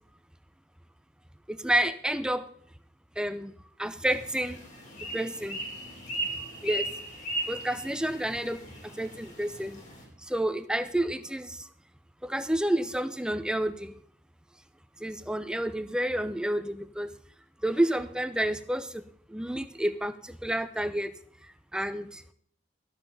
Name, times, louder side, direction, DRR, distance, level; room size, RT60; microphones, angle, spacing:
voice 1, 1.5-2.4 3.2-3.5 3.8-4.6 5.0-5.6 6.6-6.9 7.5-8.6 8.9-9.8 10.2-11.7 12.2-13.9 15.0-17.1 17.6-19.0 19.3-21.1 21.7-22.2, right 1 dB, 5° right, 11 dB, 0.5 m, -29 dB
sound 1, 4.0-10.0, right 1 dB, 45° left, 2.9 m, -37 dB
12.0 x 7.8 x 5.7 m, 0.63 s
head